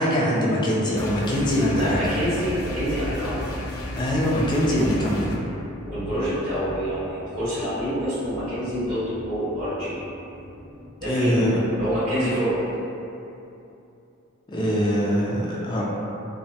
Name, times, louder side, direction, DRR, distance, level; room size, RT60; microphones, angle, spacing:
voice 1, 0.0-2.0 4.0-5.3 11.0-11.6 14.5-15.8, equal, 20° left, -5 dB, 0.3 m, -22 dB
sound 1, 1.0-5.4, left 2 dB, 90° left, 0.4 m, -33 dB
sound 2, 1.7-10.9, left 1 dB, 5° right, 1.0 m, -44 dB
voice 2, 1.8-3.5 4.7-4.9 5.8-10.0 11.0-11.5 11.7-12.6, equal, 75° right, -17 dB, 1.4 m, -27 dB
2.6 x 2.1 x 2.6 m, 2.7 s
head